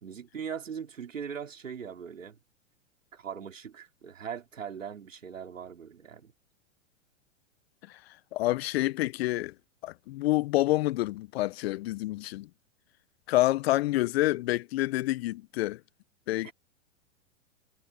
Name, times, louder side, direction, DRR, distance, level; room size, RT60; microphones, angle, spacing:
voice 1, 0.0-2.4 3.1-6.3, right 7 dB, 85° right, 3.6 m, -40 dB
voice 2, 8.3-9.5 9.8-12.5 13.3-15.8 16.3-16.5, left 17 dB, 55° left, 0.8 m, -27 dB
hypercardioid pair, 110°, 38 cm